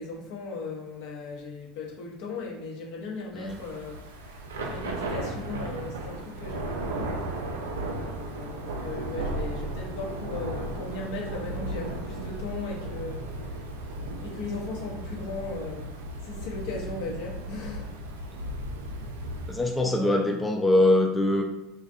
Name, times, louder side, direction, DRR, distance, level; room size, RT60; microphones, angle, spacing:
voice 1, 0.0-4.0 4.2-7.2 7.7-13.5 14.2-15.9 16.2-17.9 19.7-20.3, left 3 dB, 70° left, -2 dB, 0.7 m, -37 dB
Thunder / Rain, 3.4-19.7, right 1 dB, 90° right, 0.3 m, -35 dB
voice 2, 19.5-21.4, left 1 dB, 15° left, 2 dB, 0.3 m, -23 dB
2.5 x 2.3 x 2.4 m, 0.95 s
hypercardioid pair, 85°, 0 cm